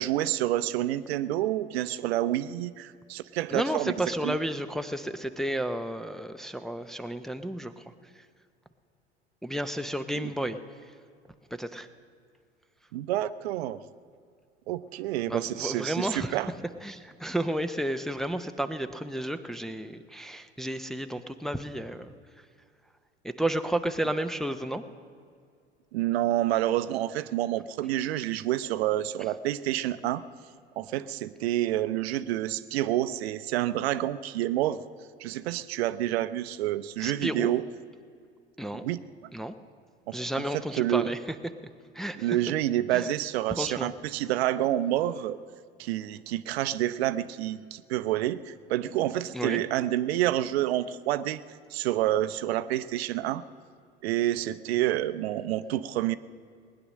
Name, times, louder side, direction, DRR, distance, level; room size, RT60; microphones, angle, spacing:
voice 1, 0.0-3.9 4.2-4.4 10.2-10.3 12.9-13.8 14.7-16.5 25.9-30.2 30.8-34.8 35.2-37.6 38.8-39.0 40.1-40.2 40.8-41.1 42.2-45.4 45.8-51.4 51.7-53.4 54.0-56.2, right 13 dB, 70° right, 14 dB, 0.6 m, -28 dB
voice 2, 3.5-8.3 9.4-10.9 11.5-11.9 15.3-16.5 16.8-22.1 23.2-24.8 37.0-37.5 38.6-38.8 39.3-39.5 40.1-41.4 41.9-42.4 42.9-43.1 43.6-43.9 49.3-49.6, right 1 dB, ahead, 7 dB, 0.6 m, -32 dB
19.5 x 10.0 x 6.4 m, 2.2 s
figure-of-eight pair, 75°, 33 cm